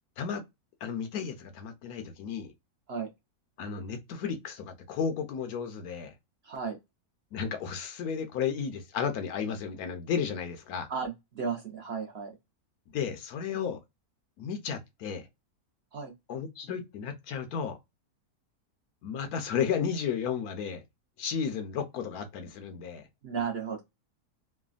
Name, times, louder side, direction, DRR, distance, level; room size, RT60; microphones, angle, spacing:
voice 1, 0.8-2.5 3.6-6.1 7.3-10.9 12.9-13.8 14.4-15.3 16.3-17.8 19.0-20.8 21.2-23.1, left 7 dB, 75° left, 1.1 m, -33 dB
voice 2, 6.4-6.8 10.9-12.3 15.9-16.1 23.2-23.8, right 6 dB, 55° right, 0.8 m, -34 dB
3.2 x 2.2 x 2.3 m
omnidirectional pair, 1.6 m